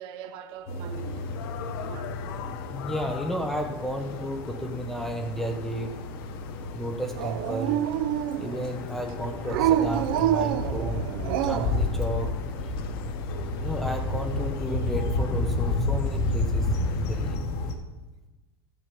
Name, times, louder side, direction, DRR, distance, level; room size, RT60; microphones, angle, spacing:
voice 1, 0.0-2.6, right 7 dB, 40° right, 0.9 m, -43 dB
sound 1, 0.7-17.7, left 2 dB, 45° left, 1.3 m, -31 dB
sound 2, 0.9-17.4, left 9 dB, 70° left, 0.8 m, -42 dB
voice 2, 2.7-6.0 6.7-7.9 8.4-11.1 11.4-12.3 13.6-17.4, right 1 dB, ahead, 0.5 m, -33 dB
Dog, 7.2-8.7 9.5-11.8, right 11 dB, 60° right, 0.6 m, -26 dB
14.0 x 6.9 x 5.2 m
supercardioid pair, 170°, 13 cm